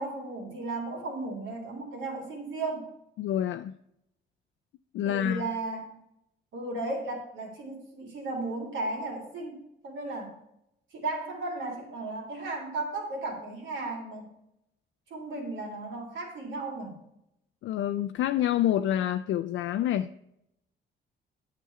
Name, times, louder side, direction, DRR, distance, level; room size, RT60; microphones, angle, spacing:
voice 1, 0.0-2.9 5.0-6.0 6.5-9.6 9.8-10.3 10.9-14.3 15.1-17.0, right 2 dB, 75° right, 1 dB, 3.3 m, -35 dB
voice 2, 3.2-3.8 4.9-5.5 17.6-20.2, left 11 dB, 75° left, 8 dB, 0.4 m, -27 dB
9.2 x 6.1 x 5.7 m, 0.80 s
cardioid pair, 90°, 20 cm